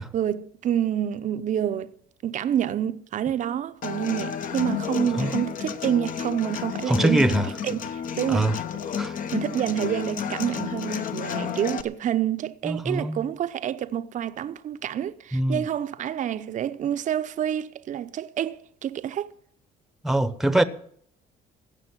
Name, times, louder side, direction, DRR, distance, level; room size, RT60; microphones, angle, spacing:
voice 1, 0.0-1.9 2.2-7.4 7.6-8.6 9.3-19.3, right 10 dB, 50° right, 0.7 m, -28 dB
Human voice / Acoustic guitar, 3.8-11.8, left 7 dB, 55° left, 1.1 m, -31 dB
voice 2, 6.9-7.5 8.3-8.5 9.0-9.1 12.6-13.2 15.3-15.6 20.0-20.6, right 1 dB, ahead, 0.9 m, -23 dB
16.0 x 6.5 x 9.6 m
cardioid pair, 110°, 17 cm